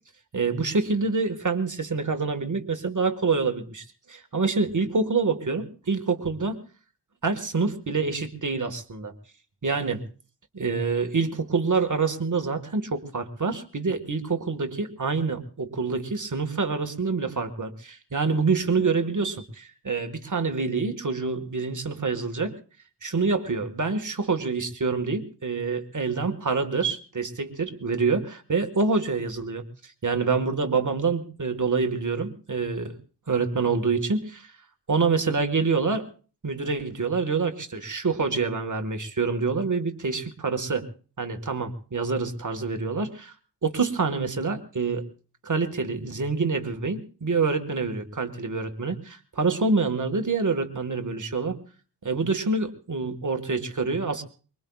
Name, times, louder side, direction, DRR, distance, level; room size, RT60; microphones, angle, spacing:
voice 1, 0.3-6.6 7.2-9.1 9.6-10.0 10.5-22.5 23.0-29.6 30.0-32.9 33.3-34.5 34.9-36.1 36.4-40.9 41.2-43.3 43.6-45.0 45.4-51.6 52.0-54.2, right 4 dB, 45° right, 6 dB, 1.6 m, -26 dB
24.0 x 22.5 x 2.3 m, 0.39 s
wide cardioid pair, 115°, 42 cm